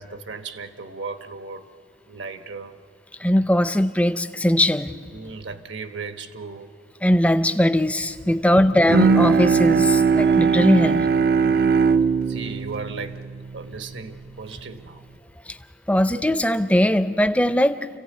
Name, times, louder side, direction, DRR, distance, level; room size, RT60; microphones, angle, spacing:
voice 1, 0.0-1.7 2.1-2.8 5.1-6.7 8.4-8.7 11.3-11.8 12.3-13.2 13.5-15.0, right 4 dB, 75° right, 8 dB, 1.2 m, -36 dB
voice 2, 3.2-5.0 7.0-11.1 15.5-15.6 15.9-18.0, left 1 dB, 5° left, 11 dB, 0.5 m, -20 dB
Bowed string instrument, 8.9-14.3, right 5 dB, 50° right, 0.5 m, -20 dB
28.5 x 15.5 x 9.1 m, 2.7 s
head